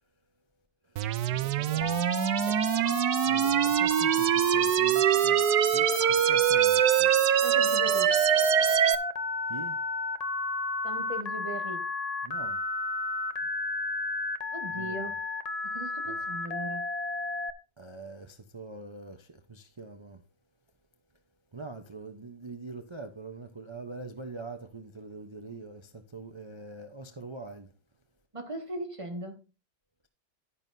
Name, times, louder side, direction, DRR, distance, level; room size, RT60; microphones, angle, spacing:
voice 1, 0.9-2.1 3.2-7.2 9.5-9.8 12.2-12.6 14.7-15.1 16.1-16.2 17.8-20.2 21.5-27.7, right 3 dB, 50° right, 0.3 m, -44 dB
sound 1, 1.0-9.0, right 11 dB, 70° right, 1.1 m, -24 dB
Telephone, 1.8-17.5, left 3 dB, 60° left, 0.4 m, -33 dB
voice 2, 7.4-8.2 10.8-11.8 14.5-15.2 15.7-16.8 28.3-29.4, right 1 dB, 20° right, 1.6 m, -38 dB
11.0 x 9.8 x 2.7 m
omnidirectional pair, 2.0 m